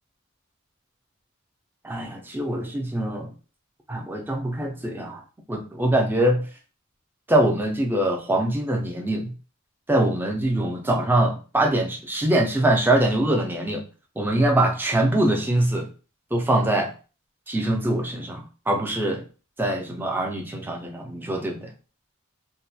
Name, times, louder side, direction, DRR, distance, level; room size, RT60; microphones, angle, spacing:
voice 1, 1.8-3.3 3.9-5.2 5.5-6.5 7.3-9.3 9.9-13.8 14.2-15.9 16.3-16.9 17.5-19.2 19.6-21.7, right 1 dB, 10° right, 2 dB, 0.4 m, -23 dB
2.7 x 2.1 x 2.3 m, 0.35 s
head